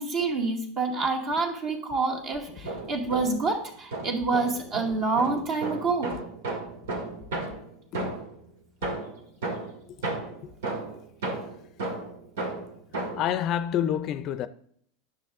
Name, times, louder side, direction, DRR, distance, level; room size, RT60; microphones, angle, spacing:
voice 1, 0.0-6.2, right 3 dB, 45° right, 2.1 m, -27 dB
sound 1, 2.5-3.5 3.9-8.4 8.8-13.3, right 2 dB, 85° right, 2.0 m, -34 dB
voice 2, 13.2-14.5, left 10 dB, 45° left, 0.5 m, -28 dB
9.6 x 6.5 x 3.6 m
supercardioid pair, 125°, 0 cm